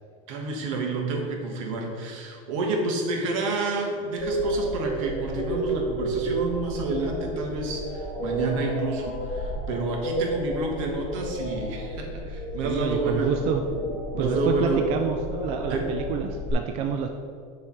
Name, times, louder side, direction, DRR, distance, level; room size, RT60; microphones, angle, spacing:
voice 1, 0.3-13.5 14.1-14.9 15.7-16.0, right 2 dB, 75° right, 1 dB, 1.3 m, -29 dB
sound 1, 4.2-16.5, right 1 dB, 35° left, 1.2 m, -31 dB
voice 2, 12.6-13.6 14.2-17.1, right 7 dB, 40° right, 4 dB, 0.4 m, -28 dB
6.7 x 3.3 x 5.6 m, 2.2 s
supercardioid pair, 165°, 17 cm